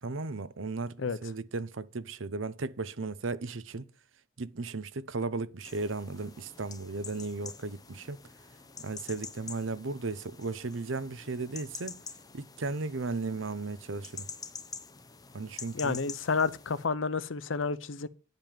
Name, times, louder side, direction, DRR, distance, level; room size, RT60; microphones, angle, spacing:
voice 1, 0.0-3.9 4.4-8.2 8.8-12.0 12.3-14.3 15.3-16.0, right 3 dB, 85° right, 0.8 m, -35 dB
sound 1, 5.6-16.9, left 5 dB, 20° left, 0.9 m, -47 dB
voice 2, 15.7-18.1, left 4 dB, 80° left, 0.7 m, -30 dB
10.5 x 5.3 x 7.5 m
head